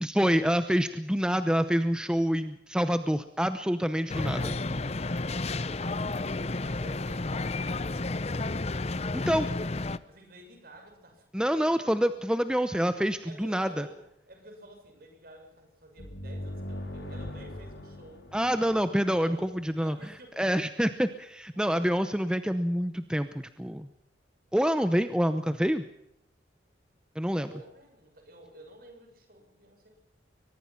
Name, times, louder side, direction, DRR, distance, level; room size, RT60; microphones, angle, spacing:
voice 1, 0.0-4.5 9.1-9.5 11.3-13.9 18.3-20.0 20.4-23.9 24.5-25.8 27.2-27.5, equal, 5° right, 10 dB, 0.7 m, -27 dB
sound 1, 4.1-10.0, left 2 dB, 35° left, 0.7 m, -31 dB
voice 2, 6.6-8.7 10.1-11.2 11.5-12.0 12.8-14.0 14.3-20.7 21.5-22.0 27.4-30.0, right 1 dB, 50° right, 5 dB, 6.3 m, -51 dB
sound 2, 16.0-19.6, left 1 dB, 80° left, 4.6 m, -40 dB
23.5 x 20.5 x 5.8 m, 0.79 s
head